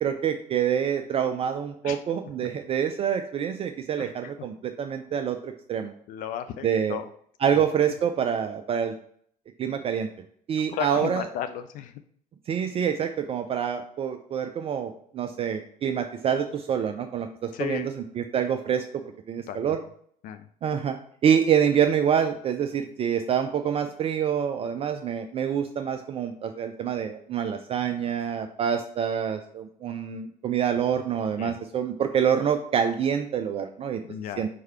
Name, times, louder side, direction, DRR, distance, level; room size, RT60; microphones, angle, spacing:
voice 1, 0.0-5.9 6.6-7.0 7.4-8.9 9.6-10.1 10.5-11.3 12.5-19.0 19.3-19.8 20.6-34.0 34.4-34.5, right 8 dB, 30° right, 6 dB, 0.5 m, -26 dB
voice 2, 4.0-4.3 6.1-7.1 7.5-7.6 10.6-12.0 17.5-17.9 19.5-19.8 20.2-20.5 31.4-31.6 34.0-34.5, left 9 dB, 40° left, 9 dB, 0.4 m, -34 dB
4.7 x 4.5 x 5.6 m, 0.63 s
figure-of-eight pair, 65°, 21 cm